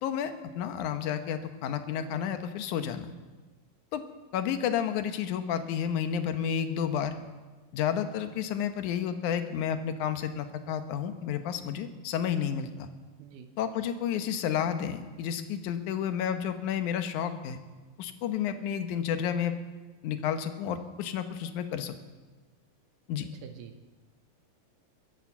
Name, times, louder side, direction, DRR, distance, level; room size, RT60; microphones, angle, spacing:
voice 1, 0.0-3.1 3.9-4.0 4.3-7.1 7.7-12.9 13.6-17.6 18.0-19.5 20.0-21.9 23.1-23.3, left 8 dB, 70° left, 9 dB, 2.2 m, -31 dB
voice 2, 13.2-13.5 23.4-24.0, right 7 dB, 75° right, 7 dB, 2.3 m, -47 dB
22.5 x 8.8 x 7.2 m, 1.3 s
omnidirectional pair, 4.1 m